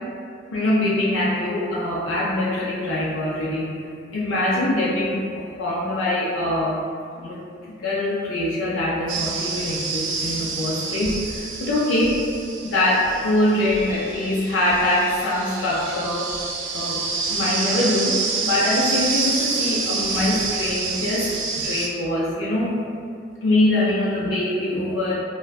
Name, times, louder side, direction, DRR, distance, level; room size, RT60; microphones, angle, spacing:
voice 1, 0.5-3.7 4.1-6.8 7.2-7.4 7.8-12.2 12.6-16.2 16.7-17.0 17.3-18.2 18.5-21.3 21.6-22.8 23.4-25.1, left 1 dB, 85° left, -7 dB, 0.4 m, -23 dB
sound 1, 9.1-21.9, right 4 dB, 90° right, 0.4 m, -28 dB
2.4 x 2.2 x 2.2 m, 2.3 s
head